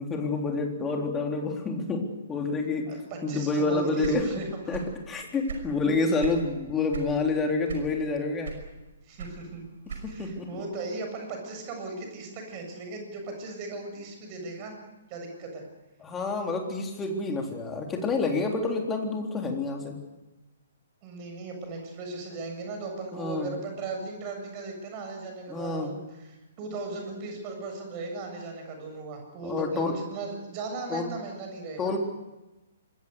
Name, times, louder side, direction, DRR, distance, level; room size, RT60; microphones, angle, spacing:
voice 1, 0.0-3.0 3.2-4.3 4.7-8.5 9.9-10.6 16.0-20.0 23.1-23.5 25.5-25.9 29.4-30.0 30.9-31.1 31.8-32.0, left 3 dB, 15° left, 2 dB, 3.6 m, -28 dB
voice 2, 2.9-4.8 9.0-9.6 10.1-14.7 15.1-15.6 21.0-31.9, right 3 dB, 30° right, 4 dB, 7.4 m, -37 dB
sound 1, 4.0-5.0 5.3-6.5 6.9-7.2 7.7-8.1 8.4-10.3, right 6 dB, 55° right, 5.7 m, -37 dB
26.5 x 22.0 x 6.8 m, 1.1 s
figure-of-eight pair, 125°, 0 cm